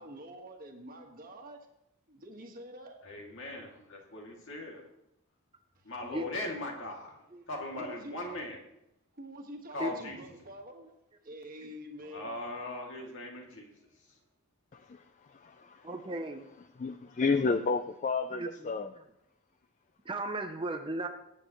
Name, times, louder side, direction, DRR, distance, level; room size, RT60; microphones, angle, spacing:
voice 1, 0.0-1.6 2.1-3.0 6.2-6.3 7.7-8.4 9.2-10.9 11.2-12.4, equal, 40° right, 3 dB, 1.5 m, -46 dB
voice 2, 3.0-4.8 5.8-7.2 7.5-8.6 9.7-10.2 12.0-13.7, left 2 dB, 55° left, 0 dB, 2.4 m, -39 dB
voice 3, 14.7-15.0 15.3-15.9 16.8-18.9, left 4 dB, 35° left, 9 dB, 0.4 m, -31 dB
voice 4, 15.8-16.5 17.4-17.6 18.3-18.5 20.1-21.1, right 2 dB, 20° right, 6 dB, 0.6 m, -36 dB
20.0 x 8.9 x 3.1 m, 0.85 s
head